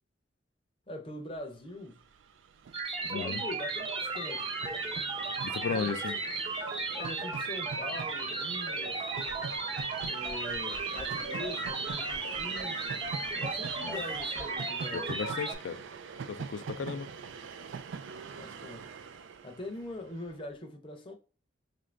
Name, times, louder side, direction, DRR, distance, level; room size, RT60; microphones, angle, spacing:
voice 1, 0.9-2.0 3.0-4.5 5.7-5.9 6.9-9.0 10.0-12.8 13.4-15.2 16.8-17.1 18.4-19.0 19.4-21.1, left 1 dB, 30° left, 0.6 m, -43 dB
Train, 1.6-1.7 1.9-20.3, right 5 dB, 80° right, 0.3 m, -44 dB
sound 1, 2.7-15.5, right 3 dB, 30° right, 0.6 m, -35 dB
voice 2, 3.1-3.4 5.4-6.2 13.8-14.0 14.9-15.8 16.3-17.1, left 6 dB, 75° left, 0.3 m, -35 dB
Dog, 9.1-14.6, equal, 65° right, 0.9 m, -50 dB
3.7 x 2.5 x 3.2 m
head